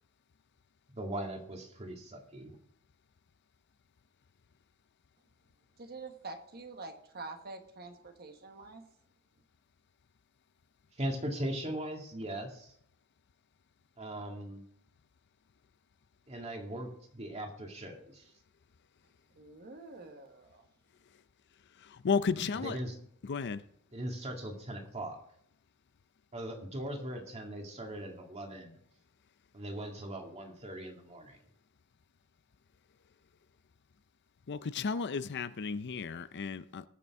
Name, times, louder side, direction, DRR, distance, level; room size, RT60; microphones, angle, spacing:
voice 1, 0.9-2.6 11.0-12.7 14.0-14.7 16.3-18.3 22.5-23.0 23.9-25.2 26.3-28.8 29.5-31.4, right 1 dB, 30° right, 2.1 m, -39 dB
voice 2, 5.8-8.8 19.4-20.7, right 3 dB, 45° right, 1.3 m, -46 dB
voice 3, 22.0-22.8 23.3-23.6 34.5-36.8, left 5 dB, 55° left, 0.5 m, -33 dB
20.5 x 6.9 x 3.6 m
head